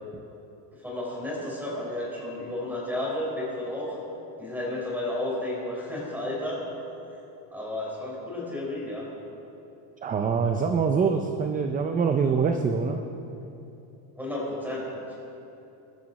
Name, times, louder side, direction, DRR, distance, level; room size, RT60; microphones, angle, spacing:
voice 1, 0.8-4.0 4.4-6.6 7.5-9.1 14.2-15.2, left 1 dB, 5° right, -4 dB, 3.9 m, -32 dB
voice 2, 10.0-13.0, right 5 dB, 20° right, 6 dB, 0.4 m, -24 dB
20.0 x 12.5 x 4.1 m, 2.8 s
cardioid pair, 160°, 46 cm